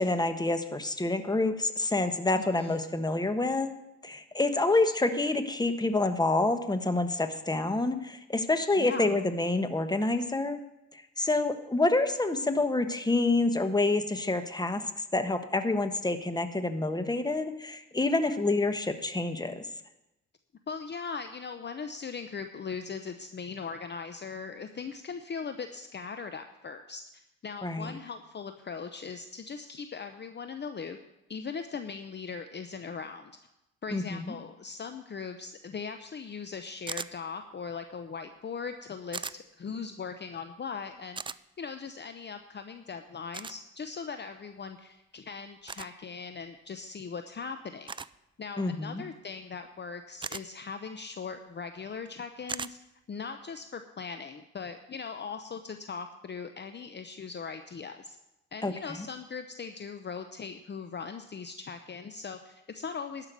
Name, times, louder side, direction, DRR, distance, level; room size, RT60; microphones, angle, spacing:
voice 1, 0.0-3.7 4.0-10.6 10.9-14.8 15.1-19.6 27.6-27.9 33.9-34.3 48.6-49.0 58.6-59.0, left 2 dB, 10° left, 9 dB, 1.3 m, -28 dB
voice 2, 2.4-2.8 8.8-9.2 20.7-31.0 31.3-33.3 33.8-47.9 48.4-52.8 53.1-58.2 58.5-63.3, left 5 dB, 35° left, 8 dB, 0.8 m, -40 dB
sound 1, 36.9-37.1 39.1-39.4 41.2-41.4 43.3-43.6 45.7-45.9 47.9-48.2 50.2-50.4 52.5-52.7, right 5 dB, 15° right, 0.3 m, -37 dB
12.0 x 5.9 x 9.3 m, 0.90 s
supercardioid pair, 60°, 32 cm